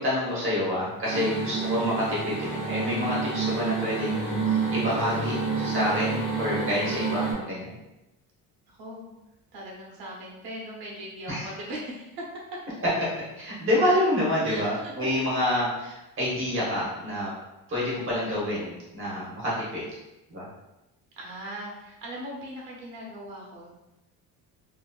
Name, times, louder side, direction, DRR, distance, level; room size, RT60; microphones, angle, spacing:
voice 1, 0.0-7.8 11.3-11.5 13.4-17.3 17.7-19.8 20.3-20.5, left 1 dB, 35° right, -7 dB, 1.0 m, -28 dB
sound 1, 1.0-7.3, right 4 dB, 5° right, 0.9 m, -29 dB
voice 2, 8.7-9.1 9.5-12.6 14.4-14.9 15.4-15.6 21.2-23.8, right 1 dB, 75° right, -3 dB, 1.0 m, -39 dB
2.7 x 2.6 x 2.3 m, 0.96 s
cardioid pair, 175°, 37 cm